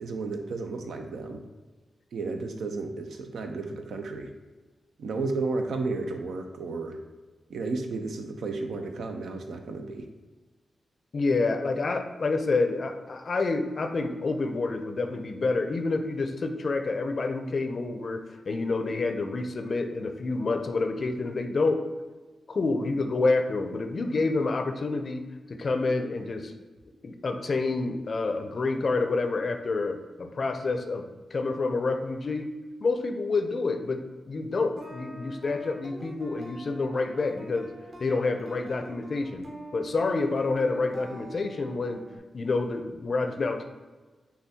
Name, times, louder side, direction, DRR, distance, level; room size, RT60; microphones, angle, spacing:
voice 1, 0.0-1.4 2.1-4.3 5.0-7.0 7.5-10.1, right 3 dB, 80° right, 4 dB, 0.5 m, -33 dB
voice 2, 11.1-21.8 22.5-25.2 25.5-26.5 27.0-32.5 32.8-37.7 38.0-39.5 39.7-42.0 42.3-43.6, left 3 dB, 55° left, 7 dB, 0.5 m, -28 dB
sound 1, 34.8-42.2, right 1 dB, 50° right, 1.1 m, -45 dB
6.9 x 2.3 x 2.8 m, 1.3 s
cardioid pair, 60°, 0 cm